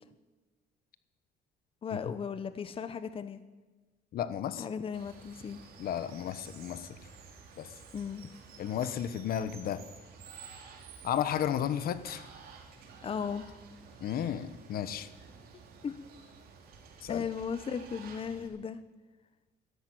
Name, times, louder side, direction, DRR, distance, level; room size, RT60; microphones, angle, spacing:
voice 1, 1.8-3.4 4.6-5.6 7.9-8.2 13.0-13.4 15.8-16.0 17.1-18.8, left 6 dB, 35° left, 12 dB, 0.9 m, -36 dB
voice 2, 4.1-4.6 5.8-6.9 7.6-7.7 8.6-9.8 11.0-12.3 14.0-15.1 17.0-17.2, left 9 dB, 60° left, 13 dB, 1.1 m, -33 dB
Water, 4.9-18.5, right 5 dB, 65° right, 3.2 m, -52 dB
13.0 x 11.5 x 9.2 m, 1.2 s
cardioid pair, 110°, 17 cm